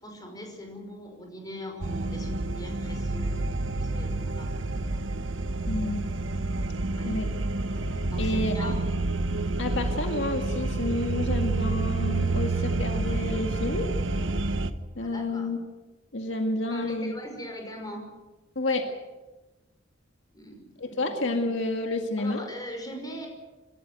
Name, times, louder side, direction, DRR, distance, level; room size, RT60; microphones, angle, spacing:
voice 1, 0.0-3.5 3.8-4.5 6.9-7.2 8.1-8.8 15.0-15.5 16.7-18.2 20.3-21.1 22.2-23.3, equal, 20° left, 3 dB, 5.7 m, -41 dB
sound 1, 1.8-14.7, right 2 dB, 80° right, 1.3 m, -29 dB
voice 2, 5.7-6.0 7.0-7.3 8.2-8.8 9.6-13.9 15.0-15.6 16.1-17.1 18.6-18.9 20.8-22.4, left 2 dB, 75° left, 4 dB, 2.0 m, -29 dB
27.0 x 13.5 x 9.3 m, 1.1 s
head